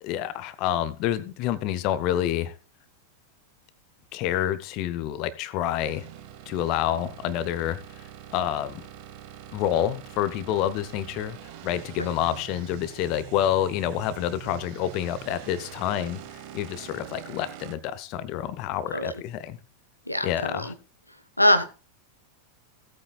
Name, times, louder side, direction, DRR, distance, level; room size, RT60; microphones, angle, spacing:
voice 1, 0.0-2.5 4.1-6.1 6.5-8.9 9.5-11.4 11.6-16.2 16.5-19.6 20.2-20.7, left 11 dB, 40° left, 14 dB, 0.8 m, -28 dB
sound 1, 5.8-17.8, right 10 dB, 45° right, 1.5 m, -44 dB
voice 2, 20.1-20.7 21.4-21.7, left 1 dB, 90° left, 10 dB, 0.9 m, -23 dB
16.5 x 8.6 x 2.3 m, 0.33 s
figure-of-eight pair, 90°, 0 cm